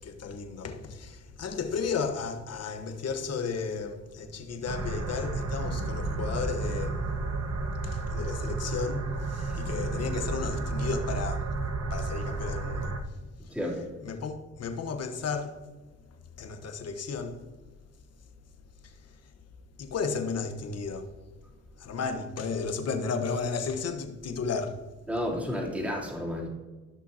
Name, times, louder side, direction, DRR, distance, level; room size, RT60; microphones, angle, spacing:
voice 1, 0.0-7.0 7.8-11.5 11.9-12.9 14.0-15.6 16.4-17.4 18.8-18.9 19.8-21.1 21.8-24.8, left 5 dB, 55° left, 1.2 m, -33 dB
sound 1, 4.7-13.0, right 3 dB, 55° right, 1.2 m, -32 dB
voice 2, 25.1-26.5, left 1 dB, 5° right, 2.9 m, -31 dB
14.5 x 6.2 x 2.8 m
cardioid pair, 90°, 30 cm